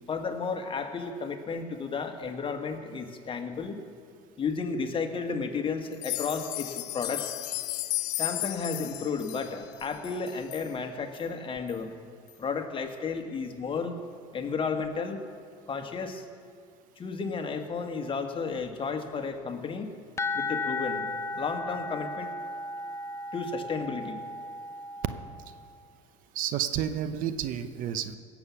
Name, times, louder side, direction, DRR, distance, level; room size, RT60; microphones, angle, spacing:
voice 1, 0.1-3.8 4.4-7.3 8.2-11.9 12.4-14.0 14.3-15.2 15.7-16.2 17.0-19.9 20.3-21.1 21.3-22.3 23.3-24.2, left 5 dB, 35° left, 5 dB, 1.6 m, -33 dB
sound 1, 5.9-10.7 11.1-11.2 11.7-11.8 12.3-12.4, left 17 dB, 70° left, 0.6 m, -34 dB
sound 2, 20.2-25.8, left 2 dB, 20° left, 0.7 m, -35 dB
voice 2, 26.3-28.2, right 10 dB, 60° right, 11 dB, 0.8 m, -30 dB
17.5 x 7.2 x 7.1 m, 2.2 s
hypercardioid pair, 75°, 16 cm